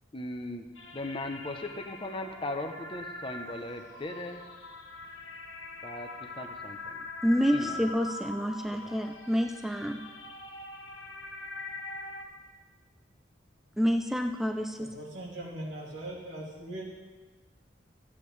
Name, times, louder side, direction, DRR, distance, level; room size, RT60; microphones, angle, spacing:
voice 1, 0.1-0.6 0.9-4.4 5.8-7.1 7.5-7.8 8.8-9.0, left 2 dB, 25° left, 5 dB, 0.7 m, -38 dB
sound 1, 0.7-12.2, left 2 dB, 90° left, 1.2 m, -43 dB
voice 2, 7.2-10.0 13.8-14.9, equal, ahead, 4 dB, 0.4 m, -28 dB
voice 3, 14.8-16.8, right 1 dB, 90° right, -4 dB, 2.6 m, -40 dB
14.0 x 8.6 x 3.3 m, 1.3 s
head